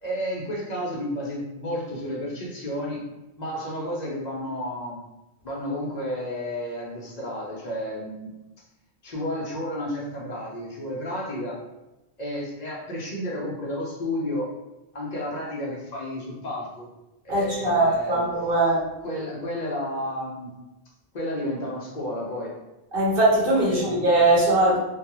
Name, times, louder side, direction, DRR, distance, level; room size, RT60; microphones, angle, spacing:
voice 1, 0.0-3.0 3.4-5.0 5.4-8.3 9.0-11.6 12.2-14.5 14.9-16.9 17.2-18.2 19.0-20.5 21.1-22.5 23.6-24.0, left 1 dB, 50° left, -3 dB, 0.5 m, -31 dB
voice 2, 17.3-18.9 22.9-24.8, right 2 dB, 50° right, -6 dB, 1.0 m, -21 dB
2.2 x 2.2 x 2.9 m, 0.98 s
omnidirectional pair, 1.3 m